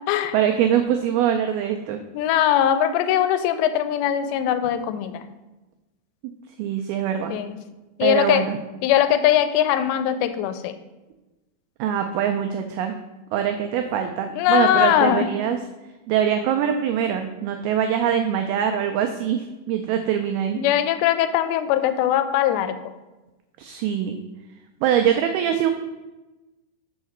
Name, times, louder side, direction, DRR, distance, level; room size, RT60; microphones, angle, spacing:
voice 1, 0.3-2.0 6.6-7.3 8.0-8.6 11.8-13.0 13.3-15.6 16.1-20.6 23.6-24.2 24.8-25.7, right 9 dB, 90° right, 5 dB, 2.1 m, -23 dB
voice 2, 2.1-5.2 7.3-7.6 8.0-8.4 8.8-10.7 14.4-15.3 20.6-22.8, left 11 dB, 85° left, 10 dB, 2.7 m, -21 dB
5.4 x 4.7 x 6.4 m, 1.1 s
omnidirectional pair, 4.9 m